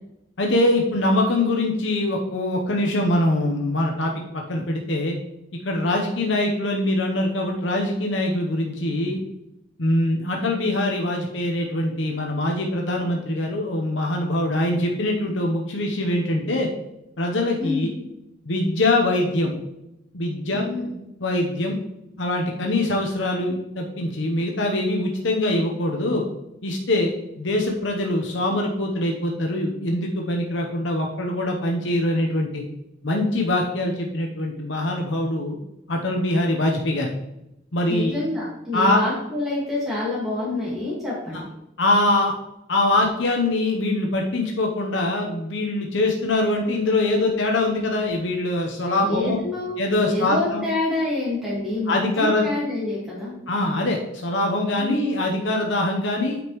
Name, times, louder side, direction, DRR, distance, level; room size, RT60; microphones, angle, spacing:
voice 1, 0.4-5.2 5.6-9.2 9.8-16.7 17.2-17.9 18.5-19.5 20.1-20.6 21.2-21.8 22.2-26.2 26.6-32.6 33.0-35.6 35.9-37.1 37.7-38.1 38.7-39.0 41.3-41.4 41.8-42.3 42.7-49.4 49.8-50.6 51.9-52.5 53.5-56.4, left 1 dB, 75° left, 1 dB, 0.9 m, -23 dB
voice 2, 17.6-17.9 20.5-20.9 37.9-41.5 49.0-53.3 54.8-55.1, left 2 dB, ahead, -8 dB, 1.8 m, -27 dB
9.0 x 5.3 x 3.1 m, 0.87 s
head